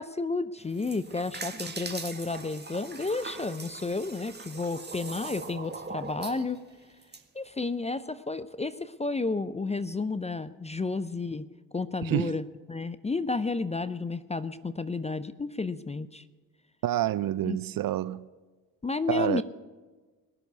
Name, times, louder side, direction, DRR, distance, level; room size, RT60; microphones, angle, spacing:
voice 1, 0.0-6.6 7.3-11.4 11.7-16.2 17.4-17.6 18.8-19.4, left 3 dB, 15° left, 0.5 m, -32 dB
sound 1, 0.6-7.2, right 4 dB, 20° right, 1.7 m, -41 dB
voice 2, 12.0-12.4 16.8-18.2 19.1-19.4, right 13 dB, 45° right, 0.5 m, -28 dB
20.0 x 6.8 x 8.1 m
hypercardioid pair, 55°, 50 cm